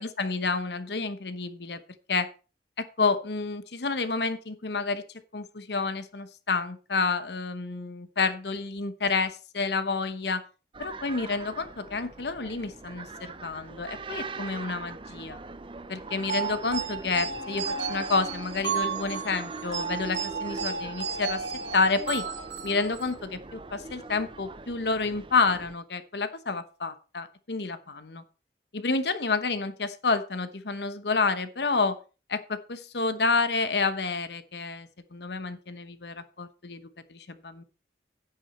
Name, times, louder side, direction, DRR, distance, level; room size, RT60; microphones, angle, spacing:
voice 1, 0.0-1.8 2.1-2.3 2.8-5.0 5.3-10.4 10.8-15.4 15.9-21.4 21.7-22.2 22.6-28.2 28.7-32.0 32.3-36.8 37.1-37.6, left 4 dB, 65° left, 12 dB, 1.0 m, -29 dB
sound 1, 10.7-25.8, right 3 dB, 30° right, 0.6 m, -42 dB
sound 2, 16.3-23.2, right 5 dB, 85° right, 1.4 m, -33 dB
9.8 x 8.6 x 4.3 m, 0.34 s
head